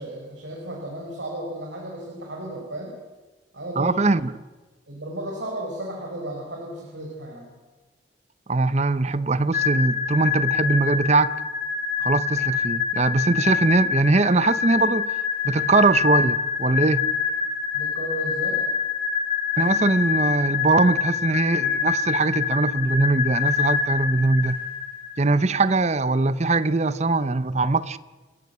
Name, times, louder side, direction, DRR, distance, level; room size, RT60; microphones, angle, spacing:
voice 1, 0.0-3.0 3.5-4.1 4.9-7.5 17.7-18.6, right 1 dB, 75° right, 4.5 m, -34 dB
voice 2, 3.8-4.3 8.5-11.3 12.0-15.1 15.4-17.1 19.6-24.6 25.2-28.0, right 3 dB, 35° right, 0.7 m, -21 dB
sound 1, 9.5-25.1, left 7 dB, 45° left, 3.5 m, -26 dB
29.5 x 15.0 x 7.9 m
head